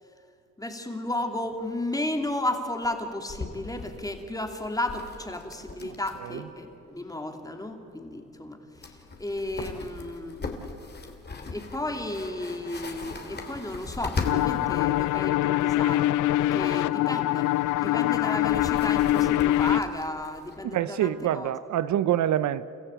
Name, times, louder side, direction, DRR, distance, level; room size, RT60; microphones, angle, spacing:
voice 1, 0.6-10.4 11.5-17.5 17.8-21.5, left 1 dB, 10° left, 2.7 m, -33 dB
sound 1, 1.5-1.6 1.8-1.9 2.2-2.4 2.8-6.4 6.6-6.7 8.4-8.5 8.7-15.1 17.0-20.6, left 3 dB, 35° left, 3.0 m, -39 dB
sound 2, 14.2-19.8, left 15 dB, 80° left, 0.5 m, -24 dB
voice 2, 20.6-22.7, right 11 dB, 70° right, 0.7 m, -26 dB
29.5 x 15.0 x 9.0 m
cardioid pair, 90°, 30 cm